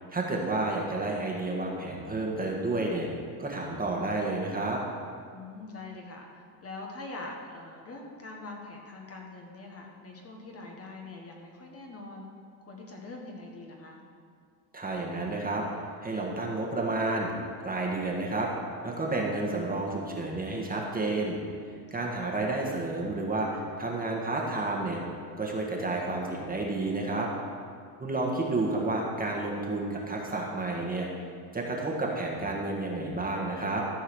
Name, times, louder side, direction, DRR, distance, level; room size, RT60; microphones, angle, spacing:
voice 1, 0.1-3.1 3.4-4.8 14.7-15.6 16.0-17.3 17.6-18.5 18.8-21.4 21.9-25.0 25.4-27.3 28.0-31.1 31.5-33.8, right 2 dB, 20° right, -1 dB, 1.6 m, -30 dB
voice 2, 5.3-12.2 12.7-14.0 21.9-22.1, left 2 dB, 30° left, 0 dB, 1.5 m, -43 dB
13.5 x 4.7 x 6.2 m, 2.2 s
cardioid pair, 120°, 46 cm